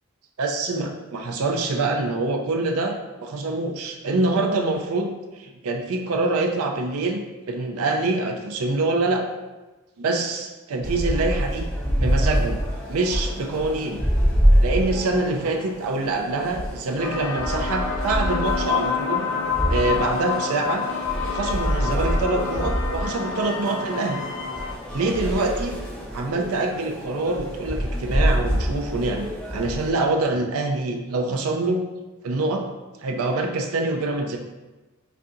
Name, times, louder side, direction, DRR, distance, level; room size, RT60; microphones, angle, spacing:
voice 1, 0.4-7.2 7.5-9.2 10.0-11.7 12.0-12.6 12.9-14.0 14.6-19.3 19.7-20.8 21.3-24.2 24.9-25.7 26.1-31.8 32.2-32.7 33.0-34.4, right 2 dB, 75° right, 3 dB, 0.5 m, -25 dB
sound 1, 10.8-29.9, equal, 5° left, 0.6 m, -26 dB
sound 2, 17.0-24.7, left 6 dB, 60° left, 0.6 m, -28 dB
5.4 x 2.7 x 2.5 m, 1.2 s
head